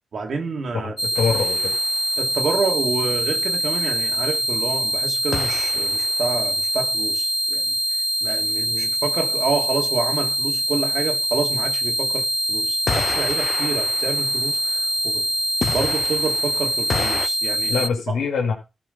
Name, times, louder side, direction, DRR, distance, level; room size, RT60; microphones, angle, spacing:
voice 1, 0.1-0.9 2.2-7.8 8.2-15.2 15.7-18.2, right 4 dB, 70° right, 2.6 m, -28 dB
sound 1, 1.0-17.9, equal, 5° right, 0.6 m, -23 dB
sound 2, 1.1-2.2 5.3-6.4 12.9-15.2 15.6-17.3, left 5 dB, 55° left, 0.7 m, -31 dB
voice 2, 1.2-1.7 17.7-18.5, left 5 dB, 85° left, 2.3 m, -23 dB
13.5 x 4.9 x 5.4 m
cardioid pair, 50°, 0 cm